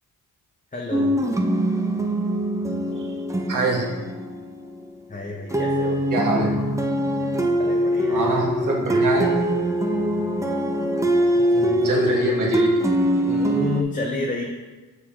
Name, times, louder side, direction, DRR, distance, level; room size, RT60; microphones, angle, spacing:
voice 1, 0.7-1.2 5.1-6.0 7.5-8.5 11.4-12.1 13.1-14.4, left 2 dB, 20° left, -1 dB, 0.8 m, -31 dB
sound 1, 0.9-4.9 5.5-13.8, right 1 dB, 10° right, 0.5 m, -23 dB
voice 2, 3.5-3.9 6.1-6.5 8.1-9.3 11.8-12.7, right 3 dB, 60° right, -2 dB, 1.7 m, -24 dB
6.9 x 4.9 x 3.6 m, 1.3 s
cardioid pair, 95°, 35 cm